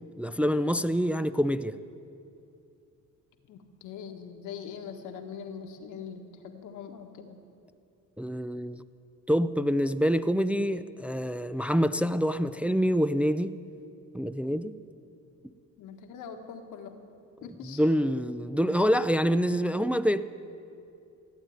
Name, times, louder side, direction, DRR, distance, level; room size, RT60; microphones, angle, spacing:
voice 1, 0.2-1.8 8.2-8.8 9.3-13.6 14.1-14.8 17.6-20.2, equal, 5° right, 0.4 m, -26 dB
voice 2, 3.5-7.4 15.8-17.0 17.4-17.8, left 7 dB, 90° left, 1.5 m, -42 dB
15.5 x 9.2 x 9.3 m
cardioid pair, 90°, 30 cm